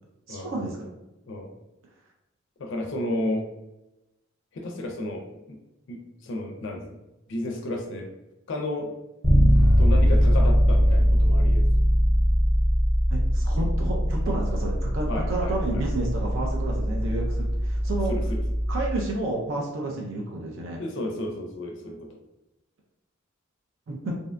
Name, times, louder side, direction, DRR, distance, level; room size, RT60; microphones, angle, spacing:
voice 1, 0.3-0.9 13.1-18.2 18.7-20.8 23.9-24.1, right 2 dB, 70° right, -1 dB, 0.4 m, -31 dB
voice 2, 2.6-3.5 4.5-5.6 5.9-6.9 7.3-8.1 8.5-8.9 9.8-11.7 15.1-15.8 18.1-18.4 20.8-22.2, left 1 dB, 65° left, 2 dB, 0.4 m, -32 dB
Bass guitar, 9.2-19.1, equal, 5° right, 0.5 m, -21 dB
2.6 x 2.1 x 2.4 m, 0.96 s
head